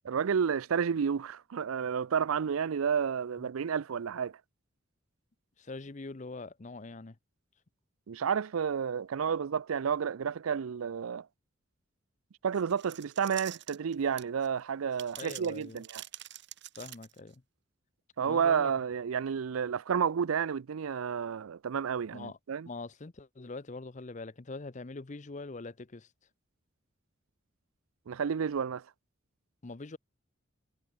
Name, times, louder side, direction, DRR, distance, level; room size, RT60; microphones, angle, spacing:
voice 1, 0.0-4.4 8.1-11.3 12.4-16.0 18.2-22.7 28.1-28.8, right 7 dB, 90° right, 0.5 m, -31 dB
voice 2, 5.6-7.2 15.2-15.8 16.8-17.4 18.2-18.7 22.1-22.4 22.7-26.1 29.6-30.0, left 3 dB, 35° left, 0.7 m, -43 dB
sound 1, 12.5-14.5 14.9-17.4, right 14 dB, 55° right, 2.8 m, -46 dB
head